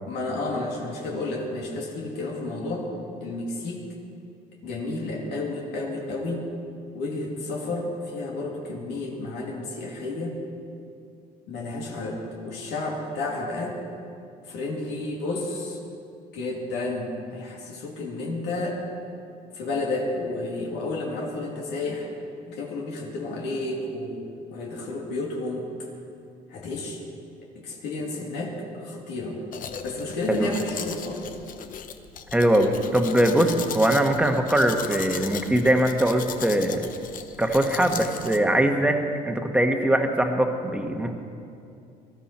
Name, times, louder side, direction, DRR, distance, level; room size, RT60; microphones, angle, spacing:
voice 1, 0.1-2.9 3.2-3.8 4.6-6.5 6.9-10.4 11.5-13.8 14.4-15.8 16.3-18.8 19.5-22.1 22.5-24.2 24.5-25.9 26.5-27.0 27.6-29.4 29.8-31.2, left 2 dB, 85° left, -2 dB, 2.4 m, -31 dB
Domestic sounds home sounds, 29.5-38.4, left 7 dB, 55° left, 0.8 m, -37 dB
voice 2, 32.3-36.9 37.4-39.0 39.2-41.1, right 1 dB, 5° right, 4 dB, 1.3 m, -22 dB
19.0 x 13.0 x 4.3 m, 2.5 s
cardioid pair, 110°, 17 cm